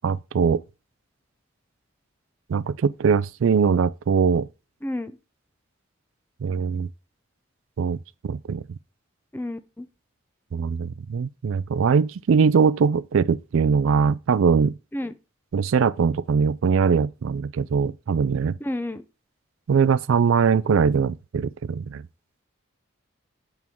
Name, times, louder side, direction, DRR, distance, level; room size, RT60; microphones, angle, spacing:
voice 1, 0.0-0.6 2.5-4.5 6.4-6.9 7.8-8.0 8.2-8.6 10.5-14.7 15.5-18.5 19.7-22.0, right 6 dB, 75° right, 0.4 m, -21 dB
voice 2, 9.3-9.9 14.9-15.1 18.6-19.0, left 1 dB, 10° left, 0.4 m, -30 dB
8.4 x 4.5 x 3.5 m
head